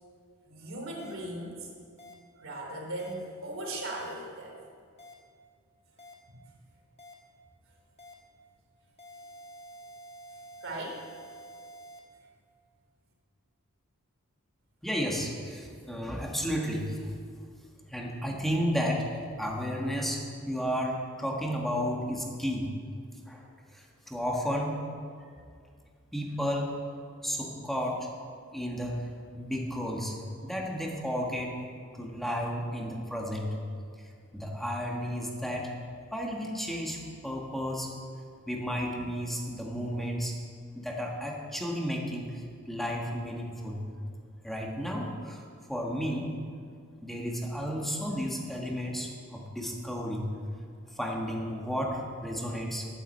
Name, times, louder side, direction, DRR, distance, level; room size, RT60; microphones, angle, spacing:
voice 1, 0.5-1.7 2.4-4.6 6.3-6.4 10.6-11.0, right 1 dB, 60° right, -1 dB, 3.5 m, -38 dB
sound 1, 1.0-1.1 2.0-2.1 3.0-3.1 4.0-4.1 5.0-5.1 6.0-6.1 7.0-7.1 8.0-8.1 9.0-12.0, equal, 30° left, 1.6 m, -48 dB
voice 2, 14.8-17.1 17.9-22.7 23.3-23.5 23.7-24.8 25.3-25.4 26.1-26.7 27.2-28.1 28.5-30.1 30.4-31.5 31.9-33.5 34.0-35.7 36.1-37.9 38.5-40.3 40.7-43.8 44.4-45.4 45.7-46.3 47.0-50.3 50.9-52.9, equal, ahead, -1 dB, 1.7 m, -33 dB
11.5 x 9.9 x 7.8 m, 2.2 s
head